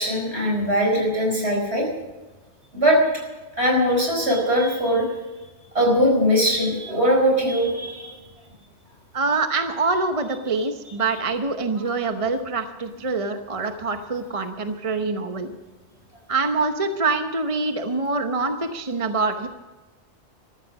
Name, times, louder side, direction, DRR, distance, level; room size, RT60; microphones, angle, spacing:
voice 1, 0.0-1.9 2.7-3.0 3.6-5.1 5.7-8.1, equal, 65° right, 0 dB, 5.1 m, -20 dB
voice 2, 9.1-15.5 16.3-19.5, right 3 dB, 30° right, 7 dB, 0.9 m, -25 dB
14.0 x 13.5 x 6.1 m, 1.2 s
omnidirectional pair, 1.2 m